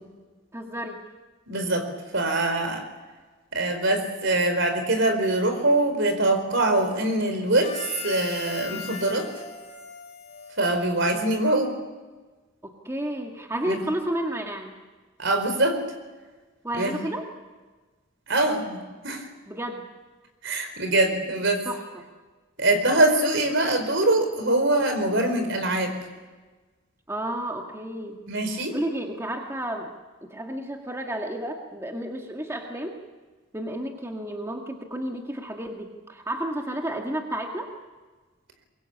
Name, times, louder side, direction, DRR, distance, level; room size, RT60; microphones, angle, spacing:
voice 1, 0.5-1.0 12.6-14.7 16.6-17.3 19.5-19.9 21.7-22.1 27.1-28.2 28.5-29.9 30.2-33.0 33.5-37.7, right 1 dB, 15° right, 2 dB, 2.0 m, -32 dB
voice 2, 1.5-2.9 3.5-9.3 10.6-11.7 13.7-13.8 15.2-15.8 16.7-16.9 18.3-19.3 20.4-21.7 22.6-26.0 28.3-28.7, right 2 dB, 65° right, 6 dB, 4.7 m, -23 dB
Harmonica, 7.5-11.3, left 6 dB, 35° left, 4.2 m, -39 dB
23.0 x 23.0 x 8.6 m, 1.3 s
head